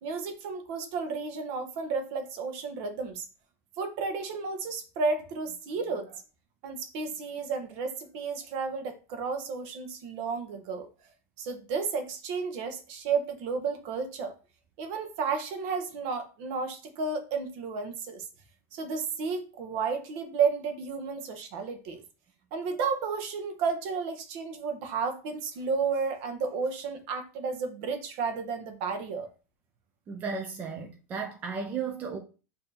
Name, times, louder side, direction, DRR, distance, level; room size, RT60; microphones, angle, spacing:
voice 1, 0.0-3.3 3.8-6.2 6.6-10.9 11.4-14.3 14.8-18.3 18.7-22.0 22.5-29.3, right 5 dB, 50° right, 0.8 m, -32 dB
voice 2, 30.1-32.2, right 5 dB, 20° right, 0.4 m, -34 dB
6.6 x 2.7 x 2.7 m
supercardioid pair, 165°, 8 cm